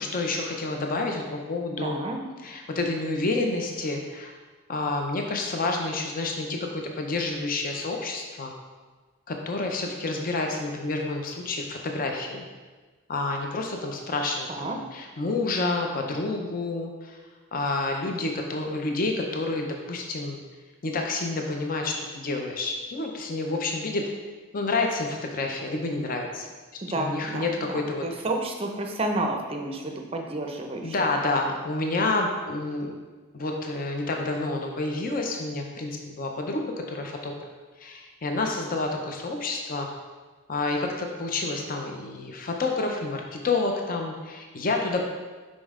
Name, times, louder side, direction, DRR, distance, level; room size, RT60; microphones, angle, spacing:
voice 1, 0.0-2.0 2.4-4.4 4.7-8.5 9.3-12.5 13.1-17.2 17.5-20.4 20.8-24.0 24.5-26.5 26.9-28.2 30.8-32.9 33.3-37.3 37.8-39.9 40.5-45.0, left 2 dB, 40° left, 2 dB, 0.5 m, -29 dB
voice 2, 1.8-2.2 14.5-14.8 26.8-31.1, right 2 dB, 25° right, 3 dB, 0.5 m, -31 dB
5.3 x 5.2 x 3.6 m, 1.3 s
head